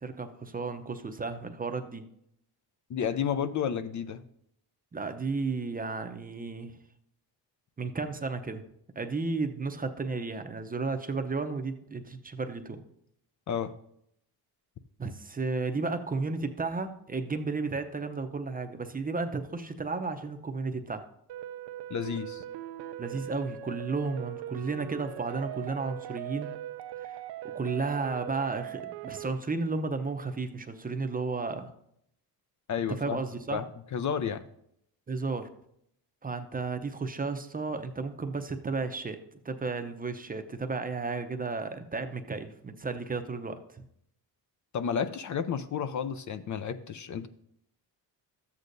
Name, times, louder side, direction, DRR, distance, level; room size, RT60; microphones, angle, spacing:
voice 1, 0.0-2.0 4.9-6.7 7.8-8.6 9.0-12.8 15.0-21.1 23.0-26.5 27.0-27.2 27.5-31.7 33.0-33.6 35.1-35.5 36.2-39.2 39.4-43.8, right 4 dB, 20° right, 8 dB, 0.7 m, -33 dB
voice 2, 2.9-4.2 13.5-13.7 21.9-22.4 32.7-33.2 33.5-33.7 33.9-34.4 44.7-47.3, left 7 dB, 45° left, 12 dB, 0.6 m, -31 dB
sound 1, 21.3-29.3, right 11 dB, 70° right, 0.6 m, -40 dB
13.0 x 8.2 x 2.6 m, 0.74 s
cardioid pair, 100°, 41 cm